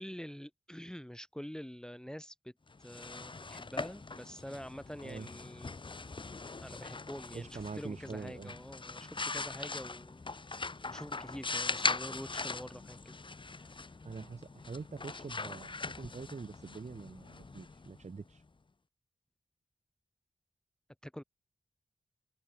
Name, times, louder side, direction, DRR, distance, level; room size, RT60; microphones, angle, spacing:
voice 1, 0.0-2.5 2.8-5.7 6.6-10.2 10.8-13.2 21.0-21.2, equal, 5° left, 1.2 m, -46 dB
sound 1, 2.7-18.4, left 3 dB, 35° left, 1.4 m, -41 dB
voice 2, 7.3-8.5 14.0-18.4, right 4 dB, 55° right, 2.8 m, -44 dB
open air
wide cardioid pair, 95°, 14 cm